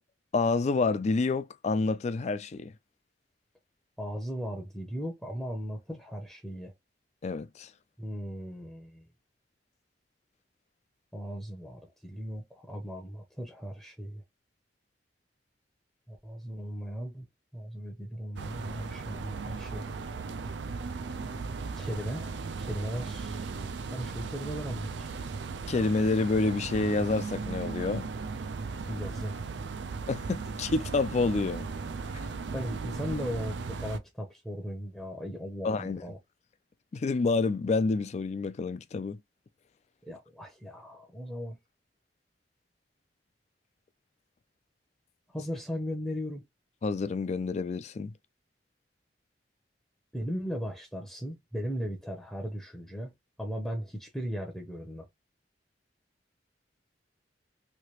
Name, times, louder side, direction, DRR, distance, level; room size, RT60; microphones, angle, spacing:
voice 1, 0.3-2.7 7.2-7.7 25.7-28.1 30.1-31.7 32.1-32.3 35.6-36.0 36.9-39.2 46.8-48.1, left 3 dB, 40° left, 0.3 m, -28 dB
voice 2, 4.0-6.7 8.0-9.1 11.1-14.2 16.1-17.3 17.5-19.8 21.7-23.5 23.9-25.1 28.9-29.4 32.5-36.2 40.0-41.6 45.3-46.4 50.1-53.1 53.4-55.1, equal, 5° left, 0.7 m, -37 dB
sound 1, 18.4-34.0, right 4 dB, 75° right, 0.5 m, -37 dB
3.2 x 2.8 x 2.9 m
head